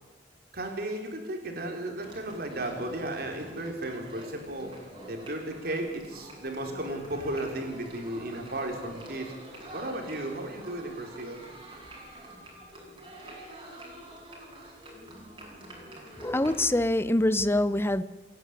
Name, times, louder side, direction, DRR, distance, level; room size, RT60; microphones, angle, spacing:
voice 1, 0.5-4.7 5.1-9.3 9.7-11.4, right 1 dB, 60° right, 4.1 m, -34 dB
sound 1, 2.0-16.7, right 1 dB, 30° right, 6.3 m, -46 dB
voice 2, 16.2-18.0, left 1 dB, 15° left, 0.8 m, -25 dB
27.5 x 11.0 x 9.7 m
head